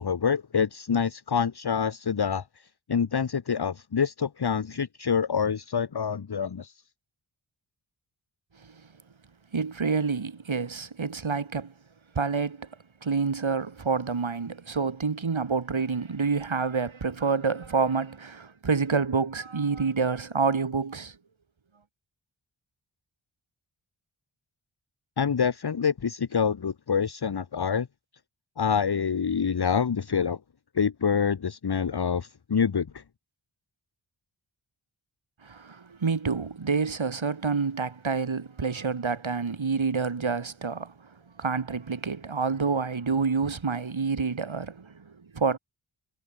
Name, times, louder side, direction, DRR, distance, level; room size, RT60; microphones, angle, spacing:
voice 1, 0.0-2.4 2.9-6.7 25.2-27.9 28.6-30.4 30.7-33.0, left 6 dB, 50° left, 1.3 m, -26 dB
voice 2, 9.5-11.7 12.1-12.7 13.0-21.1 35.4-40.9 41.4-44.9 45.3-45.6, right 5 dB, 65° right, 6.8 m, -28 dB
cardioid pair, 50°, 50 cm